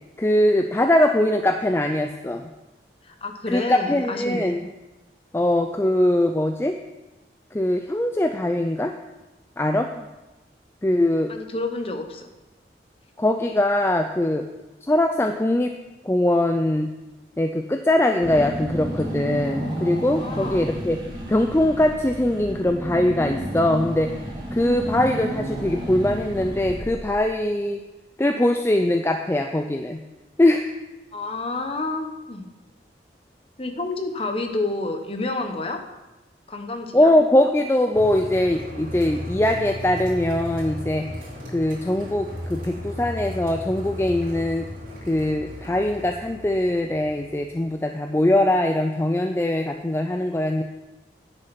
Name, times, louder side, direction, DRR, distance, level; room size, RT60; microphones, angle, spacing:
voice 1, 0.2-2.4 3.5-4.6 5.3-6.8 7.5-8.9 9.6-10.0 10.8-11.3 13.2-14.5 14.8-15.7 16.0-16.9 17.4-21.0 21.3-24.1 24.5-27.8 28.2-30.0 30.4-30.6 36.9-41.1 41.5-44.7 45.1-50.6, left 1 dB, 15° left, 5 dB, 0.4 m, -21 dB
voice 2, 3.0-4.5 11.3-12.3 13.5-13.6 20.2-20.7 31.1-32.5 33.6-35.8 36.5-37.1, left 2 dB, 30° left, 5 dB, 0.9 m, -29 dB
Car / Engine, 18.2-27.4, right 1 dB, 25° right, 1.9 m, -32 dB
sound 1, 37.9-47.7, equal, 50° right, 2.7 m, -35 dB
10.0 x 6.6 x 5.8 m, 1.1 s
head